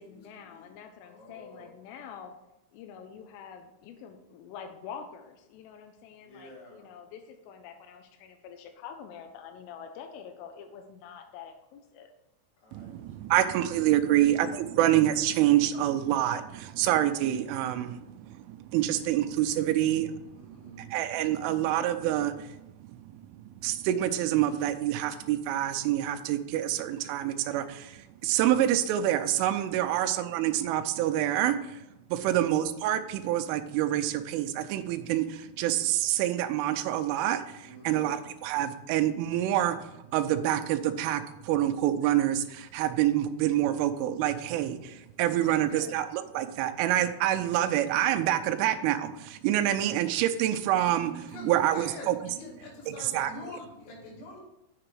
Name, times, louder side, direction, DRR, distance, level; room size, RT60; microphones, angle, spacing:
voice 1, 0.0-2.3 2.7-12.1, left 7 dB, 90° left, 5 dB, 3.3 m, -46 dB
voice 2, 1.0-1.8 6.2-6.9 12.6-13.3 20.3-20.8 29.7-30.1 32.1-32.5 37.6-38.1 45.2-46.0 49.6-49.9 51.3-54.4, left 1 dB, 65° left, -2 dB, 4.0 m, -46 dB
voice 3, 12.7-22.6 23.3-23.4 23.6-31.8 32.1-52.2 52.9-53.3, right 12 dB, 85° right, 9 dB, 3.2 m, -27 dB
7.7 x 6.8 x 4.6 m, 0.93 s
omnidirectional pair, 5.6 m